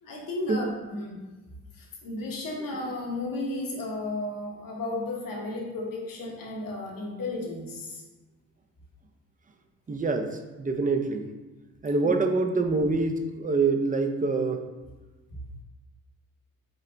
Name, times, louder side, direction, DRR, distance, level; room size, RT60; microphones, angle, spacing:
voice 1, 0.0-1.2 1.7-8.0 12.0-12.1, left 2 dB, 65° left, -2 dB, 1.2 m, -34 dB
voice 2, 9.9-11.3 11.8-14.6, right 3 dB, 25° right, 5 dB, 0.5 m, -25 dB
5.1 x 2.0 x 4.4 m, 1.2 s
cardioid pair, 65°, 36 cm